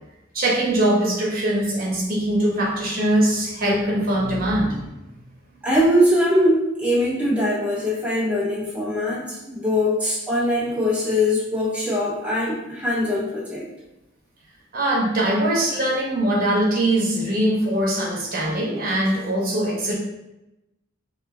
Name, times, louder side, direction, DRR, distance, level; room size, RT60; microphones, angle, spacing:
voice 1, 0.3-4.9 14.7-19.9, right 1 dB, 50° right, -3 dB, 1.0 m, -22 dB
voice 2, 5.6-13.7, left 1 dB, 5° right, -5 dB, 0.4 m, -22 dB
5.9 x 2.5 x 2.2 m, 0.94 s
head